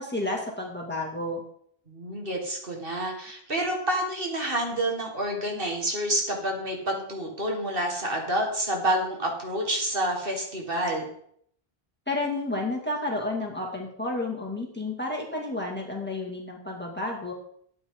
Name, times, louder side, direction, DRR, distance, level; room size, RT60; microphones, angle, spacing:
voice 1, 0.0-1.4 12.1-17.3, left 2 dB, 10° left, -1 dB, 2.3 m, -31 dB
voice 2, 1.9-11.1, right 1 dB, 60° right, 1 dB, 2.2 m, -28 dB
12.5 x 8.8 x 3.9 m, 0.66 s
omnidirectional pair, 1.0 m